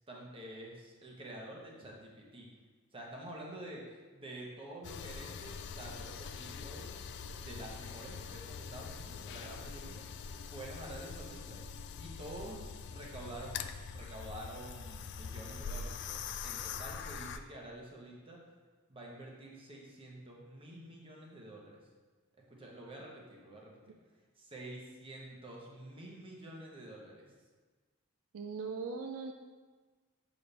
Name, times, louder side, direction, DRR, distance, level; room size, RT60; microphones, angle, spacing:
voice 1, 0.1-2.5 2.9-7.0 7.3-10.0 10.5-11.6 12.0-18.4 18.9-21.8 22.5-24.0 24.4-27.3, right 1 dB, 25° right, -2 dB, 1.0 m, -48 dB
sound 1, 4.8-17.4, left 6 dB, 55° left, 0.3 m, -44 dB
voice 2, 28.3-29.3, right 4 dB, 70° right, 4 dB, 0.4 m, -39 dB
6.7 x 4.1 x 3.4 m, 1.4 s
head